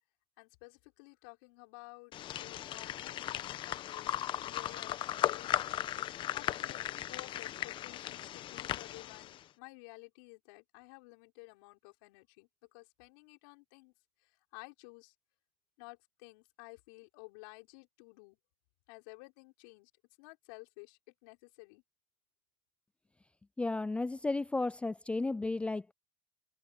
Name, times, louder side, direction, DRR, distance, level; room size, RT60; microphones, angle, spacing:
voice 1, 0.4-2.1 2.4-13.9 14.2-15.1 15.8-18.4 18.9-19.9 20.2-21.8, left 29 dB, 75° left, 5.1 m, -54 dB
sound 1, 2.1-9.4, left 12 dB, 50° left, 1.0 m, -37 dB
voice 2, 23.6-25.9, left 2 dB, 10° left, 0.5 m, -33 dB
hypercardioid pair, 90°, 11 cm